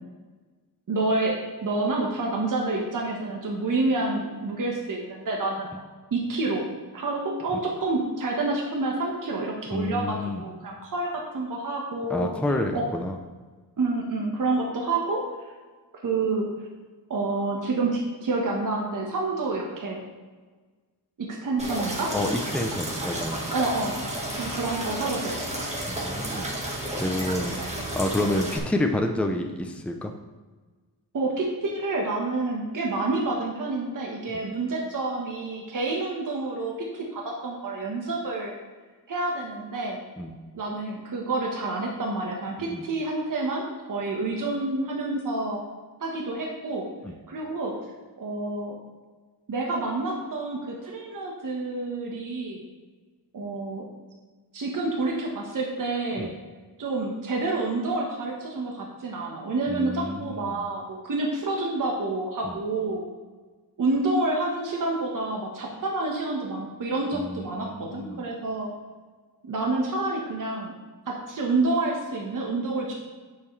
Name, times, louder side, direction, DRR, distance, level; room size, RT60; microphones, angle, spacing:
voice 1, 0.9-1.3 1.6-5.7 6.1-6.6 6.9-10.2 10.4-12.3 12.7-12.8 13.8-15.2 16.0-16.5 17.1-20.0 21.2-22.1 23.5-24.0 24.4-25.7 31.1-38.5 39.1-40.0 40.5-45.6 46.0-46.8 47.3-47.7 48.2-48.7 49.5-52.6 53.3-53.8 54.5-56.3 56.8-63.1 63.8-68.7 69.4-70.7 71.1-72.9, right 2 dB, 55° right, -1 dB, 1.3 m, -28 dB
voice 2, 9.7-10.4 12.1-13.2 22.1-23.5 25.9-26.5 27.0-27.6 27.9-30.1 40.2-40.3 42.7-42.8 47.0-47.1 56.2-56.3 59.7-60.7 62.4-62.6 67.1-68.3, left 1 dB, 5° left, 4 dB, 0.6 m, -29 dB
sound 1, 21.6-28.6, right 1 dB, 15° right, 1.6 m, -32 dB
8.5 x 7.0 x 3.2 m, 1.4 s
wide cardioid pair, 110°, 39 cm